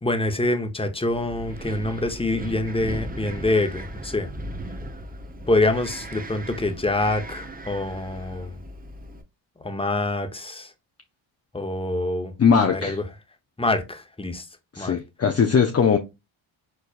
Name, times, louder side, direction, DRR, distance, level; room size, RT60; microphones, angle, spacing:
voice 1, 0.0-4.3 5.5-8.6 9.6-10.7 11.5-12.3 12.7-13.0 13.6-14.4 14.8-15.0, left 2 dB, 10° left, 1.0 m, -25 dB
Wind, 1.1-9.2, right 1 dB, 20° right, 0.8 m, -37 dB
voice 2, 12.4-13.0 14.7-16.0, left 6 dB, 30° left, 0.7 m, -19 dB
4.6 x 3.8 x 2.5 m
supercardioid pair, 60°, 48 cm